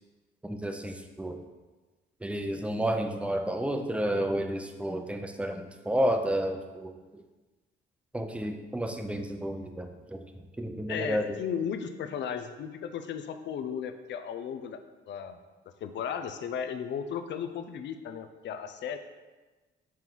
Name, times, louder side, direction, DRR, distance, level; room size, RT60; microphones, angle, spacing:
voice 1, 0.4-1.4 2.2-7.2 8.1-10.2 10.6-11.4, equal, 5° right, 5 dB, 0.6 m, -31 dB
voice 2, 10.9-14.8 15.1-15.4 15.8-19.0, left 7 dB, 65° left, 8 dB, 0.6 m, -35 dB
5.8 x 3.8 x 4.5 m, 1.2 s
cardioid pair, 90°, 20 cm